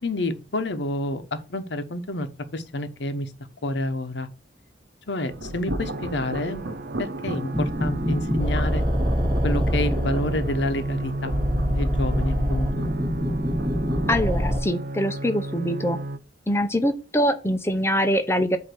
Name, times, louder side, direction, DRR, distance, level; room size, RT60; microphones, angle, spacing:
voice 1, 0.0-2.3 2.5-3.3 3.6-4.3 5.1-6.7 7.0-8.8 9.4-11.4 11.7-12.8, left 1 dB, 75° left, 1.0 m, -29 dB
sound 1, 5.3-14.2, right 1 dB, 75° right, 1.2 m, -36 dB
sound 2, 5.8-16.2, right 2 dB, 50° right, 0.6 m, -33 dB
sound 3, 7.5-14.6, equal, 25° right, 2.2 m, -25 dB
voice 2, 14.1-16.0 16.5-18.6, equal, 15° left, 0.8 m, -23 dB
8.1 x 2.9 x 5.9 m
head